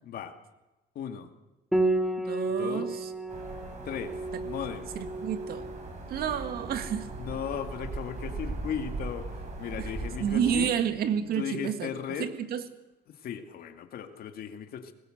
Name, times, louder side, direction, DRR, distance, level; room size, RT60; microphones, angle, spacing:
voice 1, 0.0-0.3 1.0-1.3 2.6-2.9 3.8-4.2 4.4-4.9 7.2-9.3 9.6-10.7 11.3-12.3 13.1-14.9, left 8 dB, 65° left, 7 dB, 2.2 m, -36 dB
Piano, 1.7-11.0, right 2 dB, ahead, 2.5 m, -34 dB
voice 2, 2.2-3.1 4.3-4.4 5.0-5.7 6.1-7.1 9.8-9.9 10.2-11.9 12.2-12.6, right 8 dB, 65° right, 9 dB, 2.0 m, -30 dB
sound 1, 3.3-10.7, right 3 dB, 45° right, 6.5 m, -39 dB
22.0 x 20.0 x 6.6 m, 1.1 s
cardioid pair, 110°, 17 cm